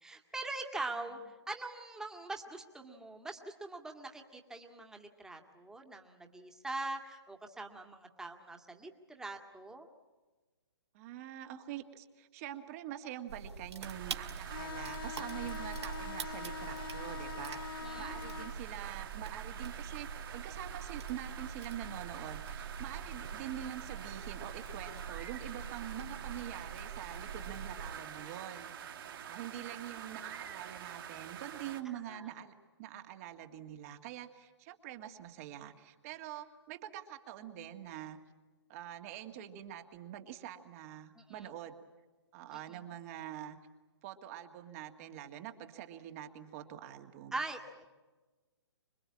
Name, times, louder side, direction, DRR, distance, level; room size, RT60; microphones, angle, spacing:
voice 1, 0.0-1.2 1.5-9.9 17.8-18.1 32.1-32.3 41.2-41.5 42.7-42.8 47.3-47.8, right 2 dB, 5° right, 3 dB, 2.0 m, -43 dB
voice 2, 10.9-32.5 32.8-38.2 38.7-41.8 42.3-43.6 44.0-47.4, right 11 dB, 30° right, 6 dB, 2.0 m, -45 dB
sound 1, 13.3-28.0, right 6 dB, 70° right, 2.5 m, -44 dB
sound 2, 13.8-31.8, right 8 dB, 50° right, 2.8 m, -47 dB
sound 3, 14.4-18.6, left 8 dB, 50° left, 1.0 m, -44 dB
26.0 x 22.0 x 8.6 m, 1.3 s
hypercardioid pair, 145°, 14 cm